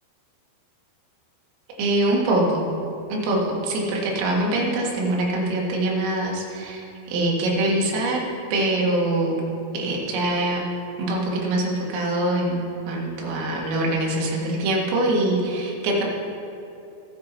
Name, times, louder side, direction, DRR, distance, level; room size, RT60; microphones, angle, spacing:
voice 1, 1.8-2.6 3.1-6.8 7.1-8.3 8.5-9.4 9.7-10.6 11.0-16.0, right 1 dB, 75° right, -3 dB, 4.5 m, -23 dB
20.0 x 7.5 x 4.1 m, 2.8 s
omnidirectional pair, 6.0 m